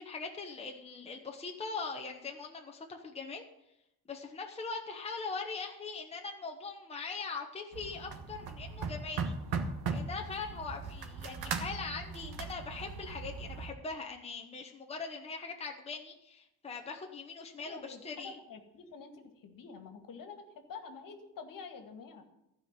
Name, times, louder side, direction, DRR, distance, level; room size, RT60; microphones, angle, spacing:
voice 1, 0.0-3.4 4.1-9.4 9.9-18.4, left 4 dB, 15° left, 2 dB, 1.1 m, -41 dB
Tearing rotten wood, 7.7-13.7, right 5 dB, 75° right, 1.4 m, -38 dB
voice 2, 17.7-20.4 20.7-22.2, left 5 dB, 55° left, 6 dB, 2.0 m, -48 dB
15.0 x 5.1 x 8.9 m, 0.84 s
cardioid pair, 145°, 38 cm